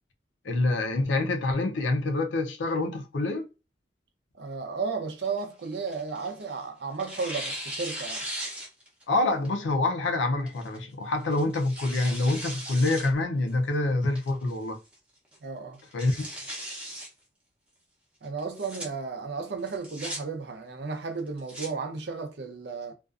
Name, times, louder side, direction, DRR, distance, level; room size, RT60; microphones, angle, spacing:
voice 1, 0.4-3.5 9.1-14.8 15.9-16.3, left 2 dB, 85° left, 0.5 m, -26 dB
voice 2, 4.3-8.3 15.4-15.8 18.2-22.9, right 4 dB, 65° right, 0.5 m, -34 dB
Tearing, 5.2-6.5 7.0-9.0 9.5-9.6 10.5-10.8 11.3-13.1 13.5-13.6 14.2-14.6 14.9-15.0 15.3-15.4 15.8-17.1 18.4-18.9 19.6-20.2 21.2-21.7, right 1 dB, 5° right, 0.6 m, -38 dB
2.5 x 2.3 x 2.3 m
head